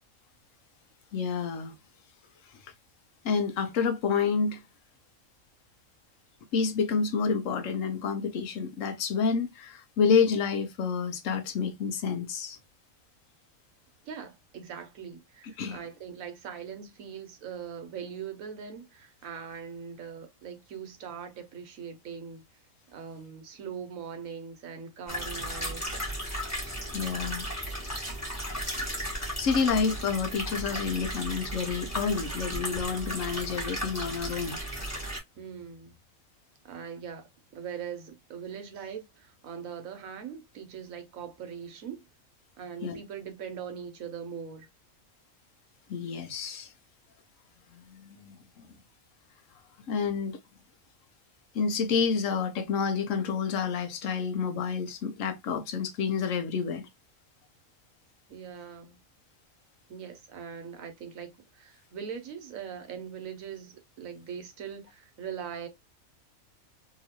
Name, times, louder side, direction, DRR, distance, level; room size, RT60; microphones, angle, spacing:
voice 1, 1.1-1.8 3.2-4.6 6.5-12.6 15.6-15.8 26.9-27.5 28.8-34.6 42.8-43.0 45.9-46.7 47.7-48.7 49.9-50.4 51.5-56.9, left 5 dB, 75° left, 1.1 m, -29 dB
voice 2, 14.0-22.4 22.9-26.1 35.3-35.9 36.6-37.3 37.5-42.1 42.6-44.7 58.3-59.0 59.9-65.7, right 7 dB, 85° right, 1.2 m, -41 dB
sound 1, 25.1-35.2, equal, 10° left, 1.5 m, -35 dB
3.0 x 2.8 x 2.8 m
omnidirectional pair, 1.4 m